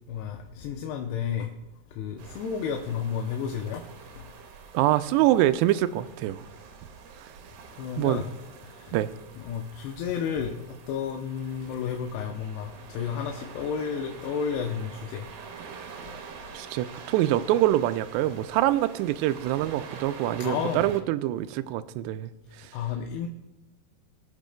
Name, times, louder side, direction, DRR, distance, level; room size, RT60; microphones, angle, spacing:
voice 1, 0.1-1.5 2.0-3.8 4.2-4.3 7.8-8.2 8.7-9.0 9.4-15.2 20.4-20.9 22.7-23.3, left 7 dB, 80° left, 3 dB, 2.8 m, -32 dB
sound 1, 2.2-21.0, right 5 dB, 70° right, 2.5 m, -46 dB
voice 2, 4.7-6.4 8.0-8.2 8.9-9.1 16.5-22.3 22.6-22.7, right 14 dB, 90° right, 12 dB, 2.7 m, -25 dB
24.0 x 8.3 x 2.2 m, 1.1 s
omnidirectional pair, 4.8 m